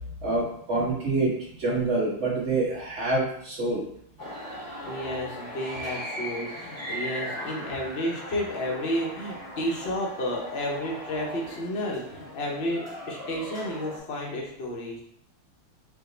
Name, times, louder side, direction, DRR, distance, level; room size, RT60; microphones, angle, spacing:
voice 1, 0.2-3.9, right 2 dB, 40° right, -5 dB, 1.2 m, -26 dB
sound 1, 4.2-14.0, equal, 20° right, 0.4 m, -38 dB
voice 2, 4.8-15.0, equal, 60° left, -2 dB, 0.6 m, -31 dB
5.1 x 2.2 x 3.8 m, 0.69 s
omnidirectional pair, 2.4 m